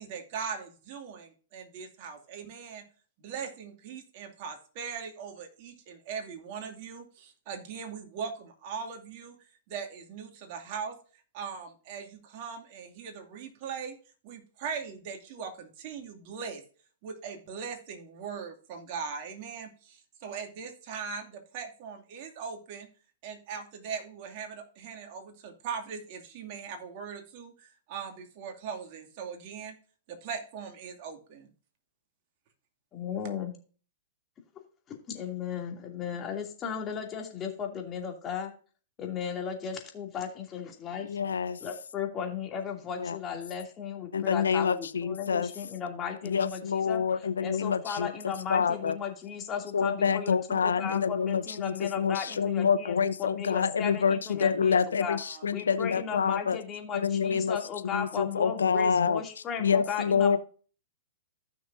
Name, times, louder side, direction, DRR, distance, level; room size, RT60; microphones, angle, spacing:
voice 1, 0.0-2.8 3.2-9.4 9.7-11.0 11.3-14.0 14.2-16.6 17.0-22.9 23.2-29.7 30.1-31.5 55.2-55.4, right 6 dB, 50° right, 2.4 m, -40 dB
voice 2, 32.9-33.5 34.9-38.5 39.0-41.1 41.6-47.0 47.4-55.2 55.5-60.4, left 7 dB, 25° left, 2.6 m, -36 dB
voice 3, 41.0-41.6 43.0-43.2 44.1-45.5 46.2-49.0 49.7-56.6 56.9-57.6 57.9-59.2 59.6-60.4, left 6 dB, 80° left, 0.7 m, -27 dB
15.0 x 6.2 x 2.6 m
hypercardioid pair, 115°, 0 cm